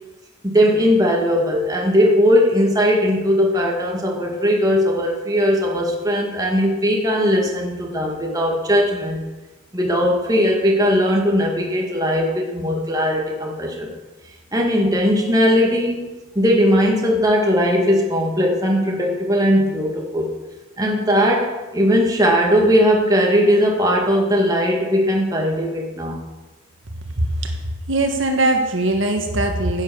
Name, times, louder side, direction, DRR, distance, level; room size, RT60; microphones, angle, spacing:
voice 1, 0.4-9.2 9.7-13.9 14.5-20.3 20.8-26.2, equal, 20° right, -1 dB, 2.1 m, -18 dB
voice 2, 27.2-27.6 27.9-29.8, right 2 dB, 75° right, 3 dB, 1.6 m, -20 dB
10.5 x 8.9 x 7.0 m, 1.2 s
head